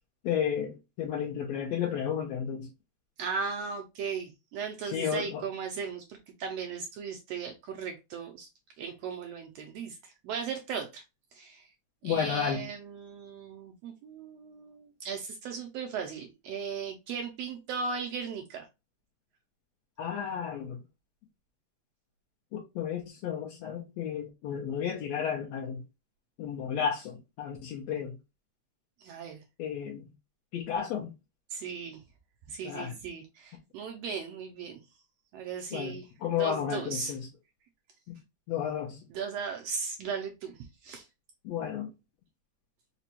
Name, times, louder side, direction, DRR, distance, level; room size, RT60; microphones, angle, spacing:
voice 1, 0.2-2.7 4.8-5.4 12.0-12.7 20.0-20.8 22.5-25.8 26.4-28.1 29.6-30.1 30.5-31.1 32.6-32.9 35.7-37.3 38.1-38.2 38.5-39.0 41.4-41.9, left 8 dB, 75° left, 1.8 m, -32 dB
voice 2, 3.2-8.5 8.8-11.0 11.3-11.6 12.0-18.7 29.0-29.4 31.5-32.0 32.5-34.8 35.3-36.1 36.4-37.1 39.1-41.0, right 5 dB, 75° right, 1.6 m, -37 dB
5.0 x 2.2 x 2.8 m
omnidirectional pair, 3.3 m